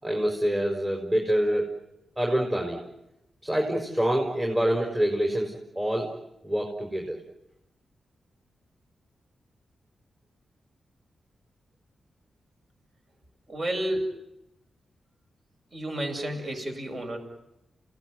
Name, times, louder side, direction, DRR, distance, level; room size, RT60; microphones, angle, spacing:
voice 1, 0.0-1.7 2.2-2.8 3.4-6.1 6.4-7.2, right 1 dB, 20° right, 1 dB, 5.0 m, -26 dB
voice 2, 13.5-14.1 15.7-17.2, right 1 dB, 50° right, 4 dB, 7.8 m, -31 dB
29.0 x 18.5 x 9.5 m, 0.89 s
cardioid pair, 70°, 0 cm